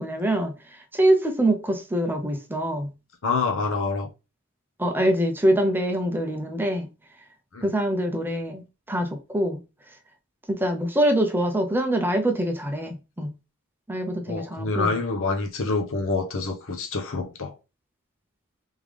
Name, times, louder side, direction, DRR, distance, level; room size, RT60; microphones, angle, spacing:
voice 1, 0.0-2.9 4.8-6.9 7.6-9.6 10.5-13.3 13.9-15.0, right 1 dB, 10° right, 0.6 m, -24 dB
voice 2, 3.2-4.1 7.5-7.7 14.3-17.5, left 3 dB, 60° left, 0.9 m, -26 dB
3.6 x 3.5 x 3.2 m
head